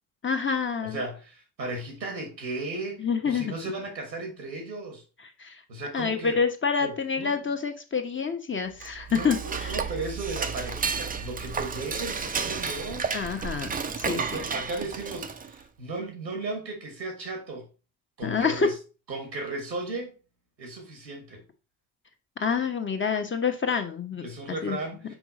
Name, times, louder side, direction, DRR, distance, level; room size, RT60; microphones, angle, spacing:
voice 1, 0.2-1.0 3.0-3.5 5.4-5.6 5.9-9.7 13.1-14.4 18.2-18.7 22.4-24.2 24.6-24.8, left 5 dB, 25° left, 1.1 m, -27 dB
voice 2, 0.8-5.0 5.7-6.4 6.8-7.4 9.1-13.2 14.0-17.7 18.2-18.7 19.1-20.1 20.6-21.4 24.2-25.2, right 2 dB, 85° right, 1.4 m, -36 dB
Dishes pots and pans / Cutlery silverware, 8.7-15.6, right 5 dB, 15° right, 0.6 m, -32 dB
6.0 x 4.6 x 4.1 m
figure-of-eight pair, 45°, 50 cm